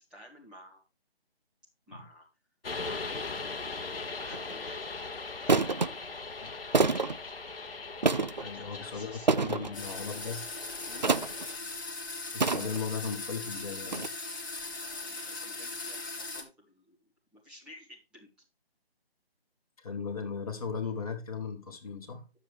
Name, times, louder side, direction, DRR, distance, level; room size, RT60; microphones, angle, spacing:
voice 1, 0.1-0.8 1.9-2.3 2.8-4.8 5.4-6.1 8.3-9.8 10.8-11.1 14.7-17.0 17.3-18.3, equal, 5° right, 2.1 m, -53 dB
sound 1, 2.6-11.6, left 3 dB, 60° left, 1.0 m, -40 dB
sound 2, 4.3-4.5 5.5-5.9 6.7-7.2 8.0-8.5 9.3-9.7 11.0-11.4 12.4-12.9 13.9-14.1, right 3 dB, 45° right, 0.4 m, -26 dB
voice 2, 8.4-10.5 12.3-14.1 19.8-22.2, left 5 dB, 35° left, 1.8 m, -37 dB
sound 3, 9.7-16.4, left 3 dB, 20° left, 2.0 m, -39 dB
11.0 x 7.1 x 3.4 m
figure-of-eight pair, 155°, 32 cm